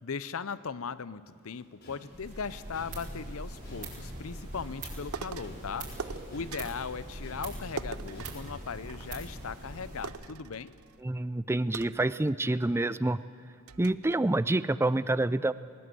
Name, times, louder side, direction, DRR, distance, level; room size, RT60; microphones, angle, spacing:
voice 1, 0.0-5.9 6.3-10.7, left 5 dB, 75° left, 17 dB, 0.7 m, -38 dB
sound 1, 1.2-7.0 7.2-9.4, equal, 50° left, 4.8 m, -51 dB
sound 2, 2.1-10.1, right 1 dB, 40° right, 5.2 m, -42 dB
sound 3, 5.1-5.6 6.0-6.9 7.8-9.4 9.7-9.8 10.0-11.0 11.7-12.7 13.2-13.3 13.7-14.1, right 6 dB, 90° right, 0.6 m, -42 dB
voice 2, 11.0-13.2 13.8-15.5, right 2 dB, 10° right, 16 dB, 0.4 m, -27 dB
19.5 x 19.5 x 7.8 m, 2.6 s
head